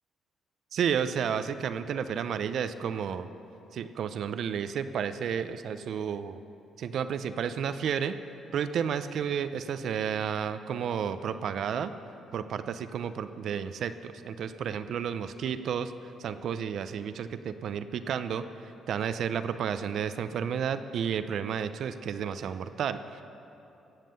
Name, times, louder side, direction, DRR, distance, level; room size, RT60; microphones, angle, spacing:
voice 1, 0.7-3.3 3.7-6.4 6.8-8.2 8.5-11.9 12.3-15.9 16.2-18.4 18.9-23.2, right 7 dB, 70° right, 11 dB, 0.6 m, -31 dB
16.5 x 7.5 x 6.7 m, 2.9 s
cardioid pair, 90°, 0 cm